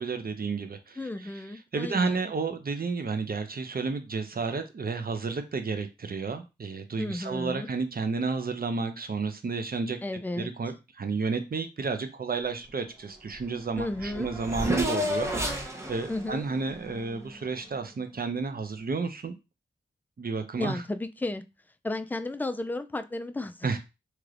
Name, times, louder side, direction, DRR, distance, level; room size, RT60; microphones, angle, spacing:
voice 1, 0.0-1.4 1.7-10.0 10.4-19.3 20.2-20.8 23.6-23.8, right 4 dB, 50° right, 0.6 m, -31 dB
voice 2, 1.0-2.2 7.0-7.7 10.0-10.5 13.8-14.3 16.1-16.5 20.6-21.4 21.8-23.8, left 2 dB, 10° left, 0.3 m, -33 dB
Race car auto racing / Accelerating revving vroom, 13.4-13.5 13.7-17.7, equal, 15° right, 0.8 m, -32 dB
3.2 x 2.9 x 2.5 m
cardioid pair, 50°, 20 cm